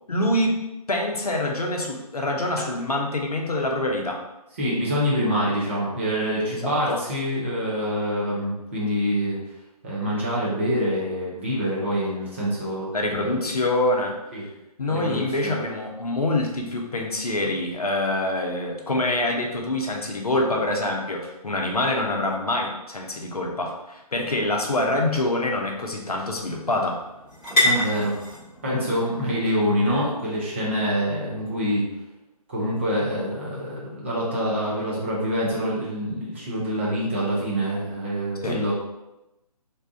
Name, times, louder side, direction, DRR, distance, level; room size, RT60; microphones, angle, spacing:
voice 1, 0.1-0.6 0.9-4.2 6.6-7.0 12.9-14.2 14.8-27.0 38.4-38.6, left 1 dB, 70° left, 1 dB, 0.7 m, -25 dB
voice 2, 4.6-9.4 9.8-13.4 14.3-14.4 14.9-15.5 27.6-28.2 28.6-31.9 32.5-38.7, equal, 20° right, -6 dB, 0.5 m, -26 dB
sound 1, 23.9-31.8, left 1 dB, 15° left, 1.1 m, -31 dB
2.6 x 2.3 x 3.6 m, 0.94 s
figure-of-eight pair, 145°, 20 cm